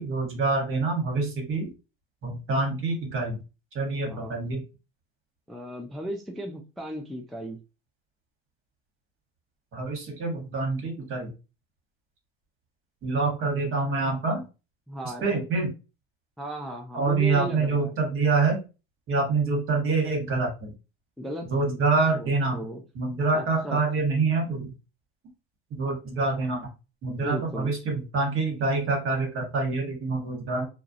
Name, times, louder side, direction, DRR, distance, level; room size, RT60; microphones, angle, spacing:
voice 1, 0.0-1.7 2.2-3.4 3.7-4.6 9.7-11.3 13.0-14.4 15.2-15.7 16.9-18.6 19.1-20.7 21.5-22.6 22.9-24.7 25.7-26.6 27.0-30.7, right 3 dB, 45° right, 1 dB, 1.2 m, -26 dB
voice 2, 4.1-4.4 5.5-7.6 14.9-15.4 16.4-17.9 21.2-21.7 22.1-22.8 23.3-23.8 27.2-27.7, right 1 dB, ahead, 1 dB, 0.3 m, -36 dB
2.3 x 2.0 x 2.6 m, 0.30 s
hypercardioid pair, 90°, 30 cm